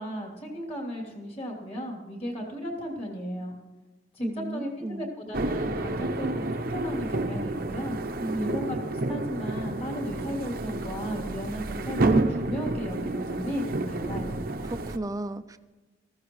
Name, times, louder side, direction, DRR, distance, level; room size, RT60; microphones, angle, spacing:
voice 1, 0.0-3.5 4.1-8.0 8.4-14.4, equal, 35° left, 0 dB, 3.1 m, -35 dB
voice 2, 4.2-5.1 8.2-8.5 14.7-15.6, right 1 dB, 20° right, 11 dB, 0.5 m, -34 dB
sound 1, 5.3-15.0, right 2 dB, 55° right, 0.7 m, -30 dB
19.0 x 14.5 x 3.2 m, 1.2 s
head